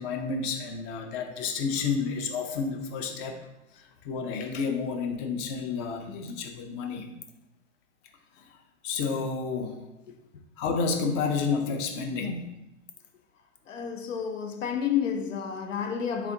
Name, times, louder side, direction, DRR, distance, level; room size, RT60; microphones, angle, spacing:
voice 1, 0.0-3.4 3.7-7.1 8.4-8.5 8.8-9.8 10.6-12.5, left 5 dB, 30° left, 0.5 m, -30 dB
voice 2, 13.7-16.3, left 8 dB, 75° left, 0.6 m, -30 dB
4.0 x 3.7 x 2.7 m
hypercardioid pair, 115°, 38 cm